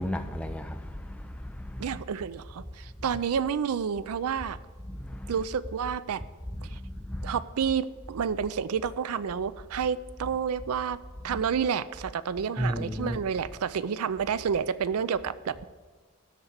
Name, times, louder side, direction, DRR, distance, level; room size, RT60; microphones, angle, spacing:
voice 1, 0.0-2.0 4.9-5.4 6.6-7.4 11.3-11.4 12.6-13.2, equal, 5° left, 0.5 m, -34 dB
voice 2, 1.8-4.6 5.3-6.2 6.7-6.8 7.2-11.0 11.2-15.6, right 7 dB, 80° right, 0.4 m, -29 dB
12.5 x 4.2 x 8.1 m
head